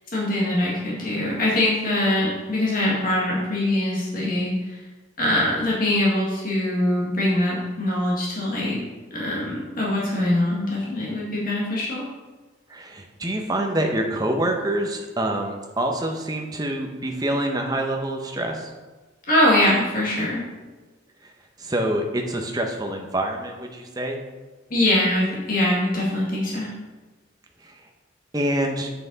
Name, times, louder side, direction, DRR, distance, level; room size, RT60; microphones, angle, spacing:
voice 1, 0.1-4.8 5.2-8.8 9.1-12.0 19.3-20.4 24.7-26.7, left 1 dB, 45° left, -5 dB, 1.9 m, -23 dB
voice 2, 10.0-10.3 12.7-18.7 21.2-21.3 21.6-24.2 27.6-27.8 28.3-28.9, right 1 dB, 20° right, 2 dB, 0.8 m, -26 dB
7.7 x 5.7 x 4.0 m, 1.2 s
head